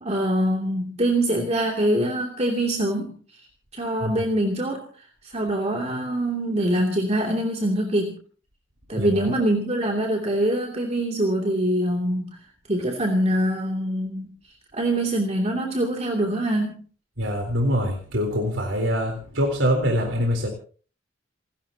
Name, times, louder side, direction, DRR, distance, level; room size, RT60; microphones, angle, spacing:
voice 1, 0.0-3.2 3.7-4.8 5.2-8.2 8.9-12.4 12.7-14.3 14.7-16.8, right 1 dB, 35° right, 0 dB, 2.8 m, -24 dB
voice 2, 17.2-20.5, equal, 80° right, 2 dB, 3.9 m, -24 dB
29.0 x 13.0 x 2.9 m, 0.41 s
head